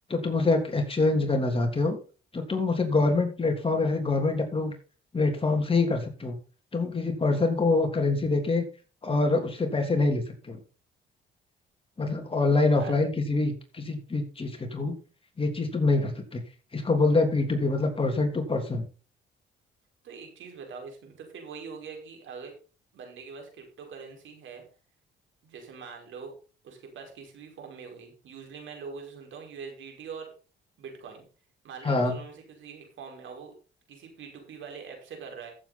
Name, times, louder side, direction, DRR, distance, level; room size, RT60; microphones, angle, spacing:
voice 1, 0.1-2.0 2.3-4.7 5.1-6.4 6.7-8.6 9.0-10.6 12.0-14.9 15.4-16.4 16.7-18.8 31.8-32.1, left 3 dB, 25° left, 3 dB, 3.2 m, -25 dB
voice 2, 20.0-22.5 22.9-24.6 25.4-26.3 26.6-30.3 30.8-31.2 31.6-33.5 33.9-35.5, right 5 dB, 75° right, 2 dB, 5.1 m, -43 dB
14.5 x 7.8 x 4.2 m, 0.35 s
cardioid pair, 90°, 20 cm